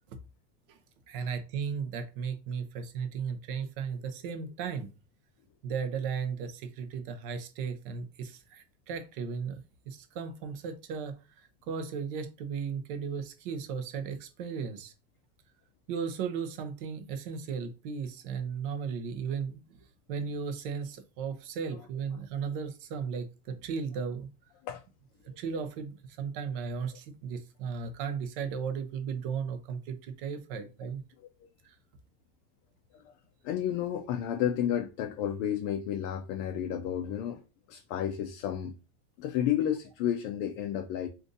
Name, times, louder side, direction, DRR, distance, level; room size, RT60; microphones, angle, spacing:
voice 1, 1.1-4.9 5.6-9.6 9.9-14.9 15.9-19.6 20.1-24.3 25.4-31.0 31.6-31.7, right 6 dB, 50° right, 0.7 m, -35 dB
voice 2, 33.4-37.4 37.7-38.7 39.2-41.1, left 10 dB, 40° left, 0.4 m, -31 dB
3.8 x 2.6 x 2.6 m
supercardioid pair, 150°, 34 cm